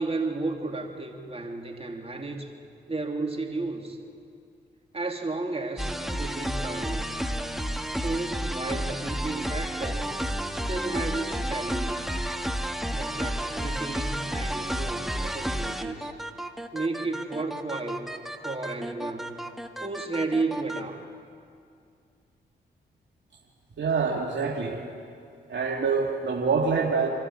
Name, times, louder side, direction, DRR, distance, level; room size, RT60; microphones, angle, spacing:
voice 1, 0.0-2.5 2.9-4.0 4.9-7.3 7.9-10.0 10.5-12.2 12.9-16.1 16.7-18.1 18.4-19.4 19.8-21.0, right 3 dB, 30° right, 2 dB, 3.2 m, -33 dB
sound 1, 5.8-20.8, equal, ahead, 1.6 m, -31 dB
voice 2, 23.8-24.8 25.5-27.1, right 5 dB, 60° right, -2 dB, 2.4 m, -25 dB
26.5 x 13.5 x 9.0 m, 2.4 s
hypercardioid pair, 40°, 21 cm